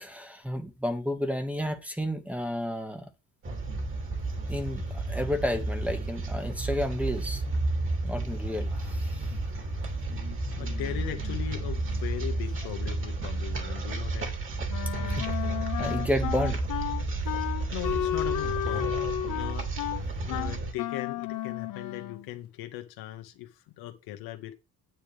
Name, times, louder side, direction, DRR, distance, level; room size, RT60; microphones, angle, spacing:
voice 1, 0.0-3.0 4.5-7.4 8.0-9.3 15.2-15.3 15.8-16.6, left 1 dB, 5° right, 1.4 m, -31 dB
sound 1, 3.4-20.7, right 2 dB, 35° right, 2.7 m, -32 dB
voice 2, 10.6-14.3 17.3-18.9 19.3-19.7 20.2-24.5, left 13 dB, 85° left, 1.7 m, -39 dB
Wind instrument woodwind instrument, 14.7-22.3, left 12 dB, 60° left, 1.2 m, -32 dB
9.7 x 8.9 x 3.4 m
cardioid pair, 135°, 36 cm